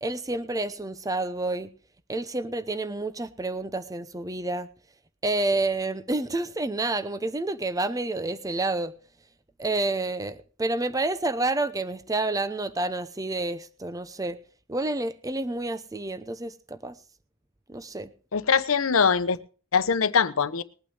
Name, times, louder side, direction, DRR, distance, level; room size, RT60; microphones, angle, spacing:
voice 1, 0.0-1.7 2.1-4.7 5.2-8.9 9.6-14.4 14.7-17.0 17.7-18.1, right 2 dB, 15° right, 0.7 m, -29 dB
voice 2, 18.3-19.4 19.7-20.6, left 6 dB, 80° left, 0.9 m, -22 dB
21.0 x 9.0 x 3.3 m
head